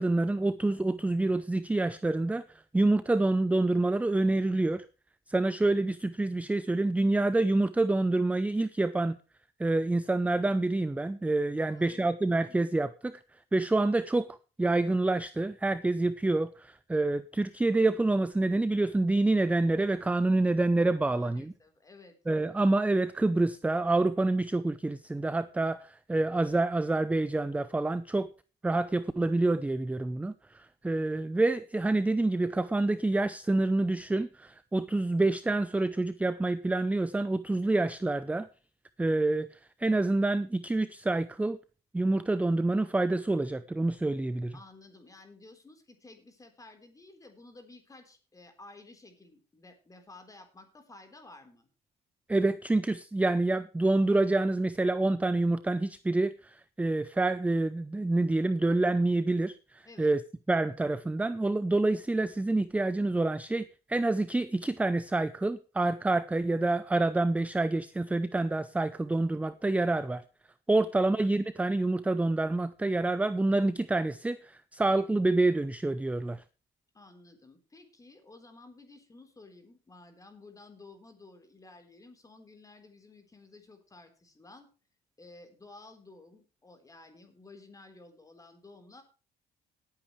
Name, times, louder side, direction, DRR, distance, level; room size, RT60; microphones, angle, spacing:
voice 1, 0.0-2.4 2.7-4.8 5.3-9.2 9.6-13.2 13.5-21.5 22.3-28.3 28.6-38.5 39.0-41.6 41.9-44.5 52.3-60.2 60.5-70.2 70.7-76.4, right 2 dB, 10° right, 0.6 m, -27 dB
voice 2, 11.6-12.2 12.5-12.7 21.0-22.2 44.5-51.7 59.8-60.1 70.9-71.1 76.9-84.7 85.2-89.0, left 2 dB, 20° left, 3.9 m, -53 dB
18.5 x 8.9 x 3.2 m
cardioid pair, 110°, 17 cm